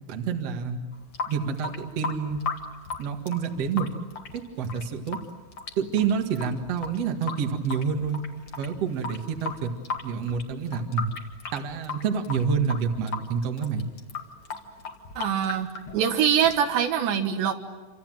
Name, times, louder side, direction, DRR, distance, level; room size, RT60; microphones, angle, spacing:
voice 1, 0.1-0.8 1.3-2.4 3.0-3.9 4.3-5.2 5.8-8.2 8.6-9.7 10.0-11.1 11.5-13.9, right 6 dB, 50° right, 4 dB, 2.1 m, -28 dB
Water tap faucet / Sink (filling or washing) / Drip, 0.9-16.9, left 4 dB, 50° left, 1.6 m, -37 dB
voice 2, 15.2-17.5, right 8 dB, 70° right, 5 dB, 3.6 m, -24 dB
28.5 x 26.0 x 7.7 m, 1.2 s
omnidirectional pair, 5.5 m